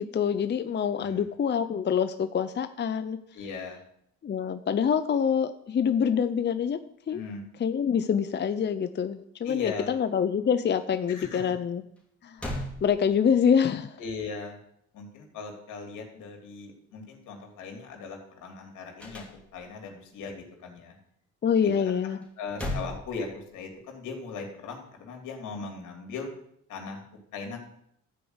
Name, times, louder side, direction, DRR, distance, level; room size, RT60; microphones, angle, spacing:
voice 1, 0.0-3.2 4.2-6.8 7.1-7.2 7.6-11.8 12.2-12.6 12.8-14.0 21.4-22.2, left 7 dB, 35° left, 10 dB, 0.6 m, -26 dB
voice 2, 3.3-3.8 7.1-7.4 9.4-10.0 11.1-11.5 14.0-14.6 14.9-19.3 19.5-21.0 21.6-21.9 22.4-26.3 26.7-27.0 27.3-27.7, left 4 dB, 80° left, 2 dB, 3.0 m, -39 dB
sound 1, 12.0-12.1 12.4-13.5 19.0-19.9 22.2-23.8, left 1 dB, 5° left, 2.7 m, -37 dB
13.0 x 5.1 x 8.0 m, 0.73 s
cardioid pair, 90°, 30 cm